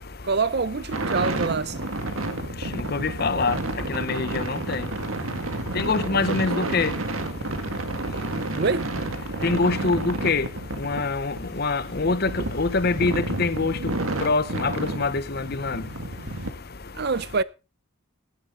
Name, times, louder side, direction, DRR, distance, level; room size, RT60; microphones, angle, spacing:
voice 1, 0.2-1.9 6.3-6.7 8.6-8.9 16.9-17.4, right 4 dB, 50° right, 0.6 m, -26 dB
sound 1, 0.9-16.5, right 2 dB, 75° right, 1.9 m, -31 dB
voice 2, 2.7-3.6 3.9-4.8 5.7-6.9 9.4-10.5 10.8-13.8 14.2-14.7 15.0-15.8, left 3 dB, 45° left, 0.8 m, -24 dB
16.5 x 11.0 x 3.8 m
head